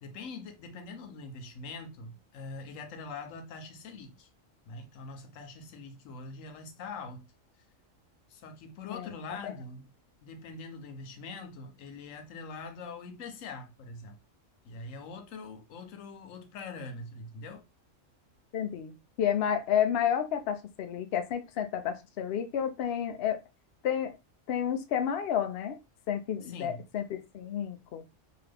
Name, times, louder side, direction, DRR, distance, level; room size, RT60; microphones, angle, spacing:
voice 1, 0.0-4.3 4.7-7.3 8.3-9.9 10.2-14.2 14.6-17.6 26.5-26.9, left 3 dB, 80° left, 1.0 m, -43 dB
voice 2, 18.5-23.4 23.8-24.2 24.5-25.8 26.1-28.0, left 9 dB, 65° left, 0.7 m, -31 dB
2.9 x 2.3 x 3.3 m
omnidirectional pair, 1.3 m